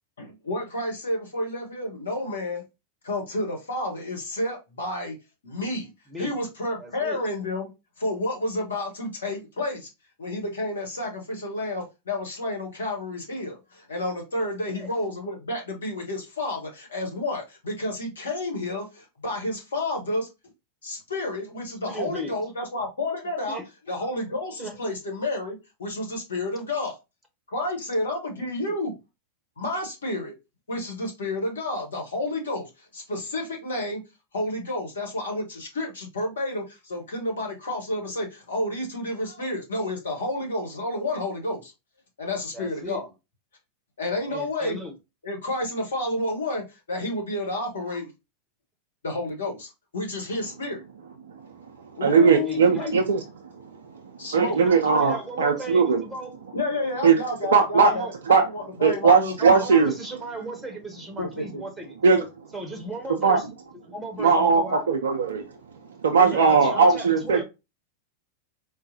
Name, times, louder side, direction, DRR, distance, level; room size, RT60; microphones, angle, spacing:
voice 1, 0.2-2.6 3.0-5.2 5.4-5.9 6.2-7.7 8.0-9.9 10.2-20.3 20.8-23.6 23.9-27.0 27.5-28.9 29.6-30.3 30.7-34.0 34.3-41.7 42.2-43.1 44.0-44.8 45.2-48.1 49.0-50.8 52.0-53.0 54.2-54.6 56.5-58.1 58.5-59.6 61.2-61.6, left 1 dB, 70° left, 1.3 m, -30 dB
voice 2, 6.8-7.2 14.7-14.9 21.9-22.3 23.5-23.6 24.6-24.8 28.4-28.8 42.5-43.0 44.3-44.9 52.2-52.9 54.4-56.3 57.8-58.1 59.4-62.3 62.5-63.5 63.9-64.8 66.1-67.4, right 2 dB, 5° right, 1.0 m, -36 dB
voice 3, 52.0-53.2 54.3-56.0 57.0-57.1 57.5-57.9 58.3-58.4 58.8-59.9 62.0-62.2 63.2-63.4 64.2-65.4 66.0-67.4, right 5 dB, 65° right, 0.4 m, -19 dB
4.2 x 2.2 x 2.7 m
figure-of-eight pair, 90°, 0 cm